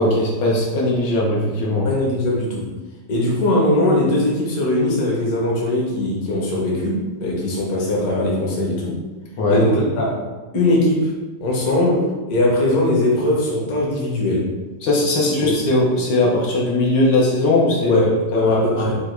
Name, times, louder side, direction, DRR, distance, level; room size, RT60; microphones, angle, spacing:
voice 1, 0.0-1.9 9.4-9.6 14.8-18.9, left 2 dB, 85° left, -4 dB, 1.6 m, -19 dB
voice 2, 1.8-2.7 3.1-9.0 9.5-10.2 10.5-11.1 11.4-14.5 15.4-15.5 17.8-19.0, left 1 dB, 60° left, -3 dB, 1.4 m, -20 dB
4.9 x 2.4 x 4.4 m, 1.3 s
omnidirectional pair, 1.9 m